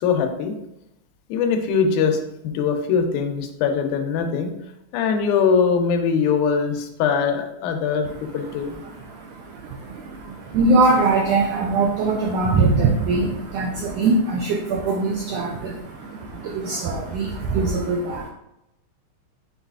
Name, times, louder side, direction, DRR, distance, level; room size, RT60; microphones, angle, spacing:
voice 1, 0.0-0.5 1.3-2.2 2.4-4.5 4.9-8.1 8.3-8.8, left 6 dB, 90° left, 5 dB, 2.1 m, -21 dB
voice 2, 8.0-18.3, right 3 dB, 90° right, 0 dB, 1.4 m, -22 dB
5.2 x 4.0 x 2.3 m, 0.86 s
omnidirectional pair, 3.5 m